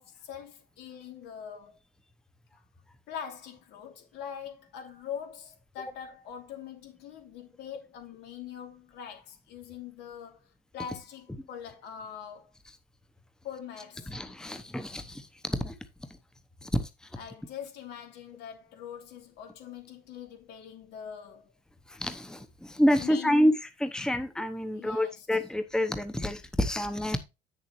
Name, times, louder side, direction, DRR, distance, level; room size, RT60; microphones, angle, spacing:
voice 1, 0.0-1.8 3.1-12.5 13.4-14.1 17.1-21.5 23.0-23.5 24.7-25.4, left 8 dB, 80° left, 3.0 m, -43 dB
voice 2, 14.1-15.7 16.6-16.9 21.9-23.5 23.8-27.2, left 1 dB, 5° left, 0.9 m, -28 dB
8.7 x 6.8 x 3.1 m
cardioid pair, 110°, 17 cm